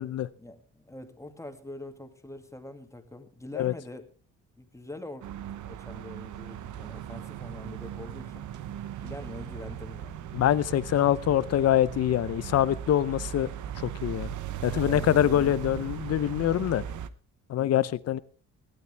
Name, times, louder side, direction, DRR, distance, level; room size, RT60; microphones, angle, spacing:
voice 1, 0.4-4.1 4.6-5.3 5.7-8.5 9.0-10.2 14.6-16.0 17.6-17.9, left 2 dB, 10° left, 2.3 m, -44 dB
sound 1, 5.2-17.1, right 10 dB, 75° right, 1.0 m, -38 dB
voice 2, 10.3-13.5 13.8-14.3 14.6-16.8 17.5-18.2, left 11 dB, 55° left, 0.7 m, -24 dB
18.5 x 12.5 x 3.4 m
cardioid pair, 90°, 30 cm